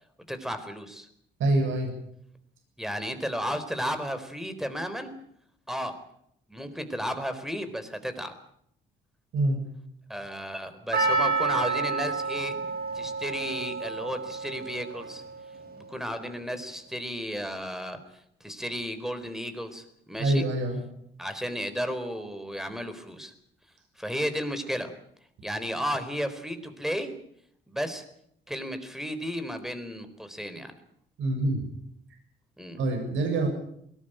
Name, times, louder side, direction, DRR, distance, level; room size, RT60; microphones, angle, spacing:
voice 1, 0.3-1.1 2.8-5.1 5.7-6.0 6.5-8.3 10.1-12.6 12.9-15.2 15.8-18.0 18.4-20.4 21.2-23.3 24.0-24.9 25.4-27.1 27.7-28.0 28.5-30.7 32.6-32.8, equal, ahead, 9 dB, 4.2 m, -33 dB
voice 2, 1.4-1.9 9.3-9.6 20.2-20.8 31.2-31.6 32.8-33.5, right 2 dB, 75° right, 3 dB, 7.3 m, -25 dB
Percussion, 10.9-15.3 15.5-15.6, right 4 dB, 55° right, 7.9 m, -29 dB
21.5 x 19.0 x 9.1 m, 0.71 s
cardioid pair, 90°, 20 cm